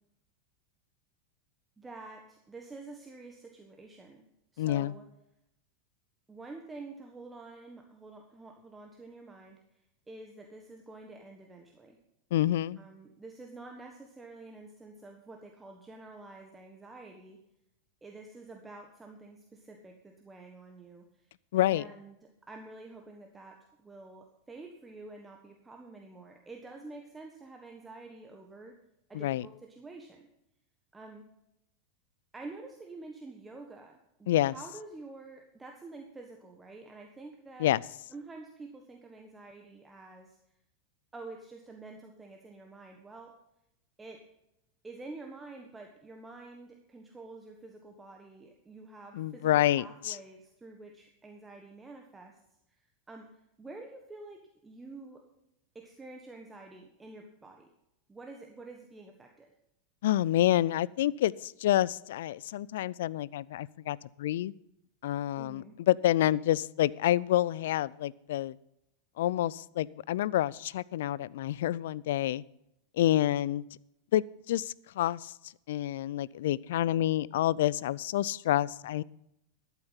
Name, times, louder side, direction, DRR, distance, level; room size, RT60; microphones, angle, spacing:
voice 1, 1.8-4.3 4.5-5.0 6.3-9.6 10.1-12.0 12.8-17.4 18.0-21.2 21.6-28.8 29.1-30.3 30.9-31.3 32.3-37.7 38.1-40.4 41.1-43.3 44.0-44.3 44.8-52.4 52.7-52.8 53.1-53.3 53.6-55.2 55.7-57.7 58.1-59.5 62.4-62.5 65.4-65.8 66.2-66.4, right 3 dB, 15° right, 2 dB, 1.4 m, -48 dB
voice 2, 4.6-4.9 12.3-12.8 21.5-21.8 29.1-29.5 34.3-34.5 37.6-37.8 49.1-50.2 60.0-64.5 65.0-68.6 69.2-72.4 72.9-73.6 74.1-75.3 75.7-79.0, left 13 dB, 65° left, 23 dB, 0.3 m, -28 dB
13.0 x 8.2 x 5.6 m, 0.84 s
figure-of-eight pair, 90°, 0 cm